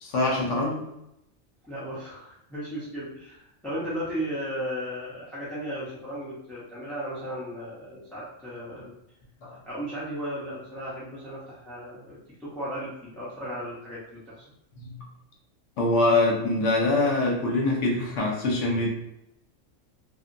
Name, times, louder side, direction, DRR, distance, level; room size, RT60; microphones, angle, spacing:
voice 1, 0.0-0.9 9.4-9.6 14.8-15.0 15.8-18.9, left 2 dB, 70° left, -2 dB, 1.1 m, -24 dB
voice 2, 1.7-8.9 9.7-14.4, equal, ahead, -10 dB, 0.5 m, -35 dB
2.7 x 2.4 x 2.5 m, 0.83 s
omnidirectional pair, 1.3 m